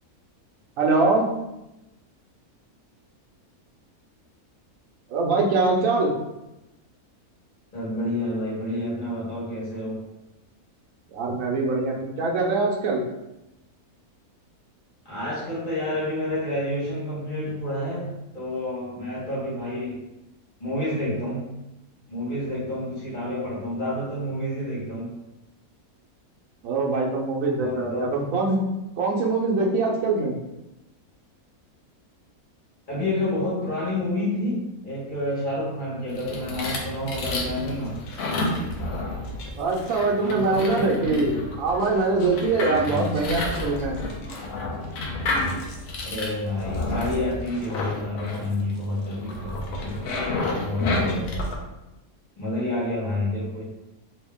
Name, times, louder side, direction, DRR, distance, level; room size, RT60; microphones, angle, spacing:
voice 1, 0.8-1.2 5.1-6.1 11.1-13.0 26.6-28.6 29.0-30.3 39.6-44.0, right 3 dB, 65° right, -1 dB, 1.1 m, -23 dB
voice 2, 7.7-10.0 15.0-20.0 20.6-21.5 22.1-25.1 27.6-28.1 32.9-38.0 40.2-41.3 42.8-43.1 46.0-50.1 50.6-51.3 52.4-53.6, left 1 dB, 35° left, -7 dB, 1.5 m, -29 dB
sound 1, 36.1-51.5, left 2 dB, 70° left, 1.1 m, -30 dB
3.1 x 2.9 x 3.5 m, 0.94 s
omnidirectional pair, 1.6 m